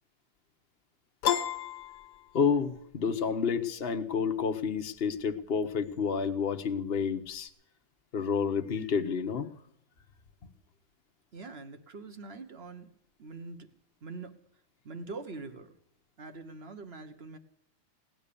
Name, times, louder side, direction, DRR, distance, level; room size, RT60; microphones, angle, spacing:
Piano, 1.2-2.8, left 10 dB, 80° left, 2.0 m, -31 dB
voice 1, 2.3-7.5 8.1-9.5, left 6 dB, 35° left, 6 dB, 1.0 m, -29 dB
voice 2, 11.3-12.9 13.2-13.7 14.0-14.3 14.8-15.7 16.2-17.4, right 3 dB, 35° right, 9 dB, 1.3 m, -43 dB
18.5 x 11.0 x 7.0 m, 0.74 s
omnidirectional pair, 2.4 m